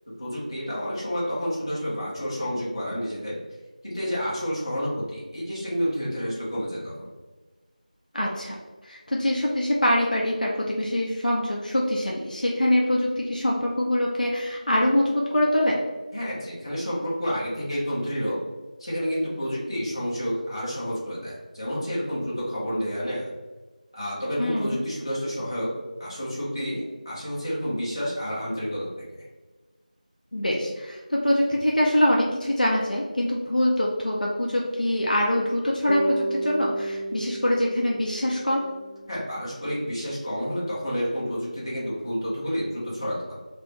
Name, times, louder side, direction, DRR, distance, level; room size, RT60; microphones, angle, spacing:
voice 1, 0.2-3.4 3.8-7.1 16.1-18.4 18.8-23.3 23.9-25.7 26.0-28.9 29.1-29.3 39.1-43.3, equal, 35° left, -8 dB, 1.0 m, -29 dB
voice 2, 8.1-8.6 8.8-15.8 24.4-24.8 30.3-38.6, left 1 dB, 70° left, -3 dB, 0.5 m, -24 dB
Bass guitar, 35.9-40.0, right 2 dB, 70° right, 0.5 m, -33 dB
3.0 x 2.0 x 3.0 m, 1.3 s
figure-of-eight pair, 175°, 5 cm